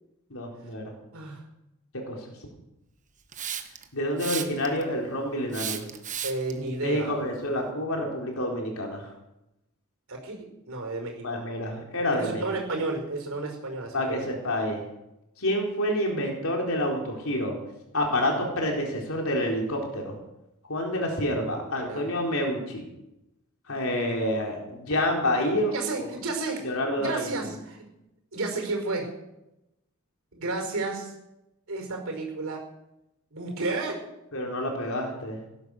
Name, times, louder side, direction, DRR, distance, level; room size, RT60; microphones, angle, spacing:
voice 1, 0.3-0.9 1.9-2.3 3.9-5.9 6.8-9.1 11.2-12.4 13.9-14.8 15.4-17.5 17.9-20.2 20.7-22.9 23.7-25.8 26.6-27.5 34.3-35.4, left 1 dB, 70° left, 0 dB, 4.1 m, -28 dB
voice 2, 1.1-1.4 6.2-7.1 10.1-11.4 12.2-14.3 21.2-22.1 25.7-26.7 27.0-27.8 28.3-29.1 30.3-31.1 31.7-32.6 33.3-34.0, right 3 dB, 70° right, 2 dB, 5.0 m, -32 dB
Hiss, 3.3-3.8 4.2-4.8 5.5-6.5, right 9 dB, 35° right, 1.4 m, -33 dB
18.0 x 12.0 x 6.6 m, 0.91 s
head